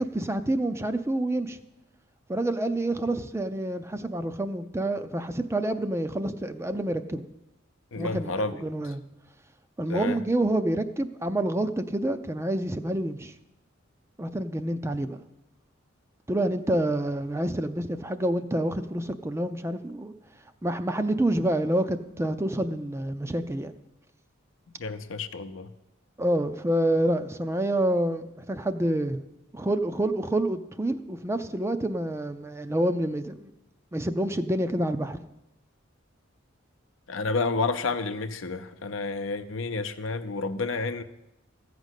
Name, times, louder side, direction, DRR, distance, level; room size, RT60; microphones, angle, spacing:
voice 1, 0.0-1.6 2.3-7.2 8.0-9.0 9.8-13.3 14.2-15.2 16.3-20.1 20.6-23.7 26.2-29.2 29.5-33.5 33.9-35.2, right 1 dB, 15° right, 0.4 m, -28 dB
voice 2, 7.9-8.5 9.9-10.2 24.8-25.7 37.1-41.0, left 3 dB, 75° left, 0.7 m, -30 dB
14.5 x 5.2 x 8.2 m
head